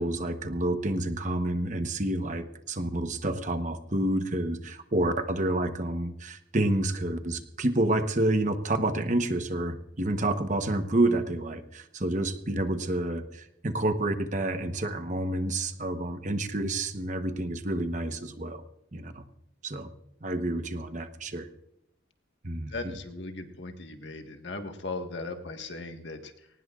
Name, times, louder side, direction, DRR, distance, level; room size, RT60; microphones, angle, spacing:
voice 1, 0.0-18.6 18.9-19.2 19.6-19.9 20.2-21.5 22.4-22.7, right 1 dB, 40° right, 8 dB, 1.0 m, -29 dB
voice 2, 22.7-26.5, left 3 dB, 70° left, 5 dB, 1.6 m, -38 dB
22.0 x 19.0 x 2.5 m, 0.79 s
head